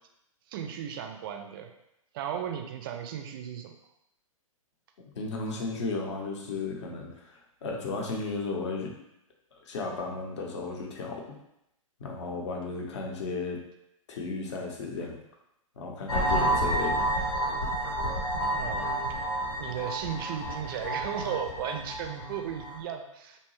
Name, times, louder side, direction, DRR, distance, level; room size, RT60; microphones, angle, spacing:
voice 1, 0.5-1.7 2.1-3.7 18.6-18.9 19.6-23.4, right 8 dB, 40° right, 5 dB, 0.4 m, -35 dB
voice 2, 5.2-8.9 9.6-11.2 12.0-13.6 14.1-15.2 15.8-16.9, left 3 dB, 55° left, 0 dB, 0.7 m, -34 dB
sound 1, 16.1-22.8, right 1 dB, 85° left, 1.0 m, -30 dB
2.7 x 2.2 x 3.0 m, 0.84 s
figure-of-eight pair, 115°, 18 cm